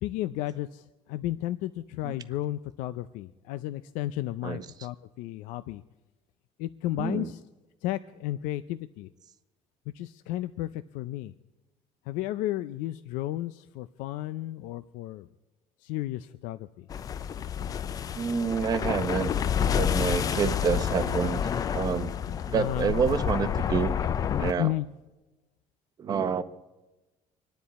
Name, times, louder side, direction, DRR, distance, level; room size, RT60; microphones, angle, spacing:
voice 1, 0.0-5.8 6.6-7.4 7.8-9.1 9.9-11.3 12.1-15.3 15.8-16.8 22.5-22.9 24.6-24.9, left 15 dB, 90° left, 12 dB, 0.5 m, -33 dB
voice 2, 7.0-7.3 18.1-19.3 19.8-22.1 22.5-23.9 24.4-24.7 26.0-26.4, right 6 dB, 30° right, 11 dB, 0.8 m, -28 dB
sound 1, 16.9-24.5, left 8 dB, 30° left, 0.4 m, -29 dB
26.0 x 10.5 x 4.2 m, 1.1 s
cardioid pair, 160°, 13 cm